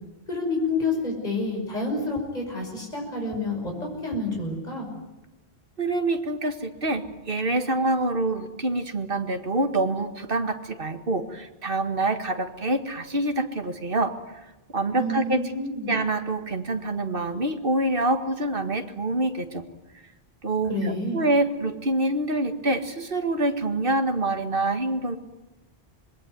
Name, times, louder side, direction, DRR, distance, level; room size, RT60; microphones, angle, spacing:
voice 1, 0.3-4.9 14.9-15.9 20.7-21.2, left 2 dB, 40° left, -1 dB, 6.3 m, -28 dB
voice 2, 5.8-14.1 14.7-15.4 15.9-19.6 20.4-25.2, right 2 dB, 60° right, 6 dB, 2.1 m, -26 dB
26.0 x 21.0 x 9.4 m, 1.0 s
omnidirectional pair, 1.1 m